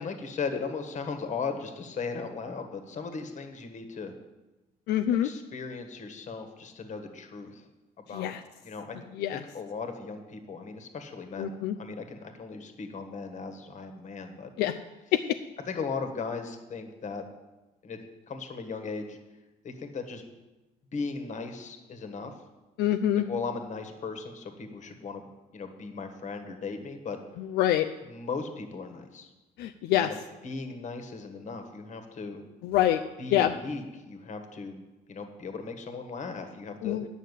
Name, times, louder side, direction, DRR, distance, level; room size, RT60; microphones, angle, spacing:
voice 1, 0.0-4.1 5.2-7.6 8.0-8.3 8.6-9.0 9.3-14.5 15.7-17.2 17.8-18.0 18.3-19.2 19.6-20.2 20.9-22.3 23.3-25.2 25.5-27.2 28.0-29.3 29.9-30.2 30.4-32.4 33.2-34.8 35.1-37.1, left 4 dB, 45° left, 6 dB, 1.5 m, -37 dB
voice 2, 4.9-5.3 8.1-8.4 9.2-9.4 11.4-11.8 14.6-14.7 15.1-15.4 22.8-23.3 27.4-27.9 29.6-30.1 32.6-33.0 33.3-33.5 36.8-37.0, left 12 dB, 85° left, 6 dB, 0.5 m, -25 dB
9.4 x 6.3 x 8.2 m, 1.1 s
cardioid pair, 110°, 17 cm